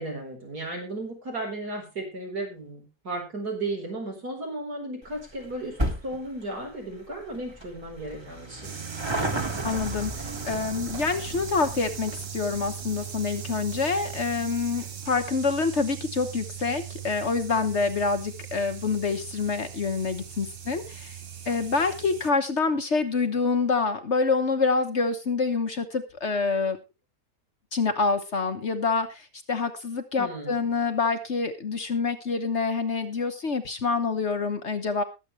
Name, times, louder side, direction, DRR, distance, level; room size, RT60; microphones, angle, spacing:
voice 1, 0.0-5.8 6.0-8.7 30.2-30.7, right 2 dB, 70° right, 1 dB, 5.0 m, -35 dB
sound 1, 5.0-17.8 18.1-18.2 19.0-19.1 19.3-19.4 19.7-19.8, right 1 dB, 15° right, 1.7 m, -36 dB
sound 2, 8.6-22.3, right 9 dB, 40° right, 1.0 m, -39 dB
voice 2, 9.6-21.2 21.5-26.8 27.7-35.0, left 4 dB, 45° left, 7 dB, 1.3 m, -26 dB
21.0 x 7.8 x 3.2 m, 0.26 s
omnidirectional pair, 1.7 m